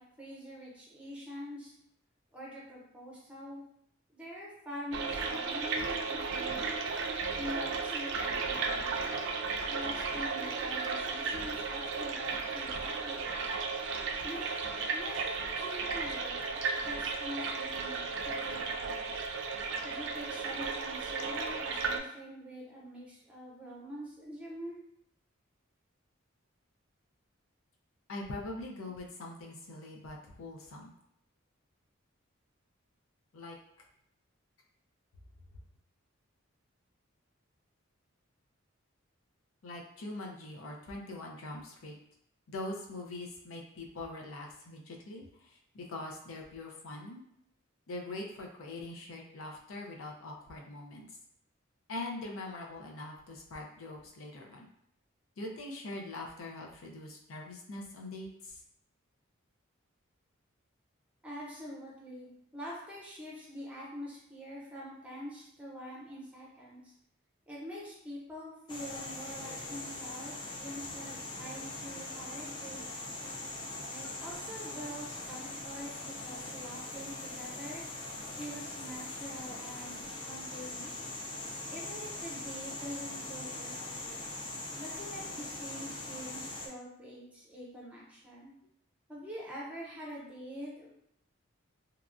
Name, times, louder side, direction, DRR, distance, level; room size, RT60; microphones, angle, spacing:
voice 1, 0.0-1.7 2.3-3.6 4.1-6.6 7.4-9.1 9.7-13.5 14.2-19.3 19.8-24.8 61.2-62.3 62.5-66.9 67.5-73.1 73.9-77.8 78.4-81.1 81.7-84.3 84.7-88.5 89.1-90.9, equal, 5° right, -5 dB, 0.7 m, -45 dB
sound 1, 4.9-22.0, right 4 dB, 60° right, 0.3 m, -34 dB
voice 2, 28.1-30.9 33.3-33.5 39.6-42.0 42.5-47.2 47.9-51.1 51.9-54.7 55.4-58.6, left 2 dB, 90° left, 0 dB, 0.5 m, -43 dB
sound 2, 68.7-86.7, left 2 dB, 20° left, 0.3 m, -41 dB
2.9 x 2.3 x 2.5 m, 0.73 s
head